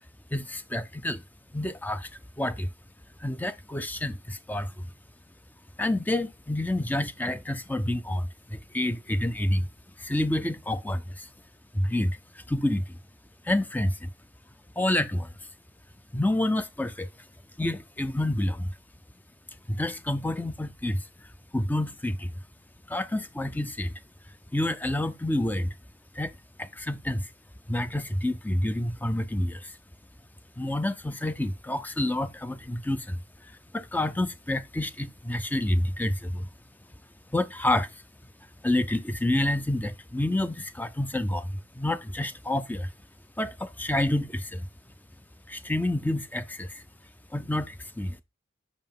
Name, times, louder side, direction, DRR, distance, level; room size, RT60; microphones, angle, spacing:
voice 1, 0.3-1.2 1.5-2.1 2.4-2.7 3.2-4.9 5.8-9.7 10.0-11.3 11.7-13.0 13.4-14.1 14.8-15.3 16.1-17.3 17.6-18.8 19.7-22.3 22.9-24.0 24.5-25.8 26.1-26.3 26.6-27.3 27.7-29.8 30.6-36.5 37.3-38.0 38.6-42.9 43.4-44.7 45.5-46.8 47.3-48.2, left 1 dB, 10° left, 0.4 m, -29 dB
7.6 x 4.9 x 3.6 m
head